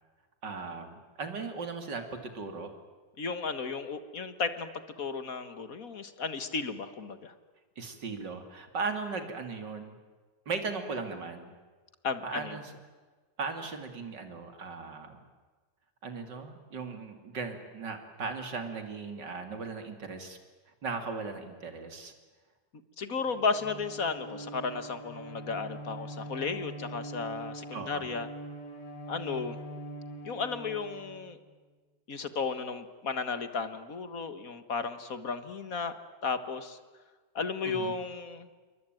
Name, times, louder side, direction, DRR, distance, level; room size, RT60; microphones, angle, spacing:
voice 1, 0.4-2.7 7.8-10.0 10.5-11.5 12.2-12.7 13.4-15.2 16.0-20.4 20.8-22.1 27.7-28.1 37.7-38.0, right 4 dB, 85° right, 7 dB, 3.5 m, -37 dB
voice 2, 3.2-4.7 5.0-7.3 12.0-12.6 23.0-28.3 29.1-29.6 30.2-31.4 32.1-36.8 37.4-38.5, left 5 dB, 55° left, 11 dB, 1.9 m, -34 dB
Bowed string instrument, 23.1-31.6, right 1 dB, 75° left, 3.4 m, -43 dB
28.0 x 23.0 x 9.2 m, 1.4 s
omnidirectional pair, 1.8 m